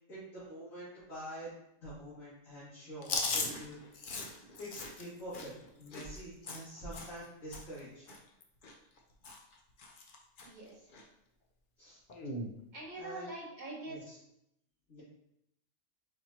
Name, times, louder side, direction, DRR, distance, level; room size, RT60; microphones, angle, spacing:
voice 1, 0.1-1.5 1.8-5.5 5.8-8.1 11.8-12.0 13.0-13.3 13.8-14.2 14.9-15.0, equal, 85° left, -12 dB, 2.5 m, -46 dB
Chewing mastication, 3.0-7.3 7.5-7.8 8.1-9.0 9.2-9.5 9.8-10.5 10.9-11.0 12.1-12.5, left 3 dB, 50° left, 0.7 m, -39 dB
voice 2, 10.4-10.9 12.7-14.0, right 2 dB, 35° right, -4 dB, 1.3 m, -44 dB
4.4 x 4.3 x 2.8 m, 0.80 s
omnidirectional pair, 1.4 m